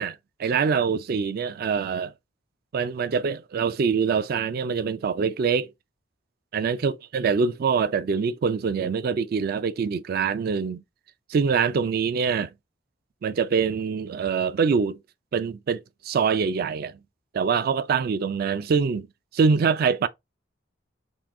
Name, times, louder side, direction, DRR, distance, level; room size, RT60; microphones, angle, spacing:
voice 1, 0.0-2.1 2.7-5.7 6.5-10.8 11.3-12.5 13.2-15.0 15.3-16.9 17.3-19.1 19.3-20.1, right 5 dB, 50° right, 0.3 m, -24 dB
3.7 x 2.6 x 3.5 m
head